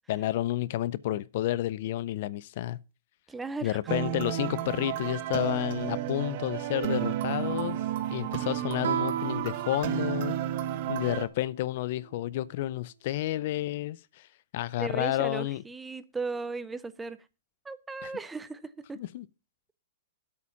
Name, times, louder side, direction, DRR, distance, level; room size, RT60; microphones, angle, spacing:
voice 1, 0.1-2.8 3.6-7.8 8.1-10.4 10.9-14.3 14.5-15.6 18.0-18.1 19.0-19.3, left 14 dB, 50° left, 0.4 m, -30 dB
voice 2, 3.3-3.8 14.8-17.2 17.6-19.0, right 4 dB, 10° right, 0.5 m, -36 dB
sound 1, 3.9-11.3, right 12 dB, 45° right, 1.1 m, -32 dB
Guitar, 8.8-11.3, right 10 dB, 75° right, 0.4 m, -35 dB
8.5 x 7.2 x 5.7 m
hypercardioid pair, 160°, 0 cm